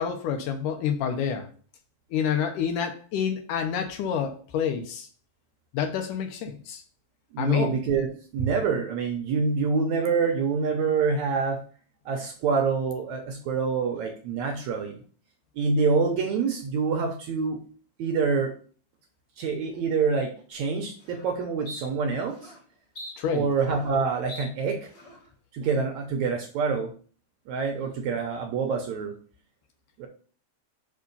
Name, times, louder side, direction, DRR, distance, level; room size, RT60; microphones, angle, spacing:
voice 1, 0.0-1.5 2.1-5.1 5.7-6.8 7.4-7.7 23.2-23.5, left 7 dB, 75° left, 6 dB, 2.2 m, -28 dB
voice 2, 7.3-11.6 12.1-15.0 15.6-17.6 18.0-18.5 19.4-22.5 23.3-24.9 25.5-26.9 27.5-29.1 30.0-30.1, right 5 dB, 75° right, 3 dB, 1.8 m, -26 dB
sound 1, 20.5-20.6 21.0-21.3 21.7-21.8 22.3-22.6 23.0-24.0 24.3-24.5 24.9-25.3, equal, 40° left, 2.1 m, -42 dB
5.5 x 5.1 x 5.4 m, 0.43 s
omnidirectional pair, 4.0 m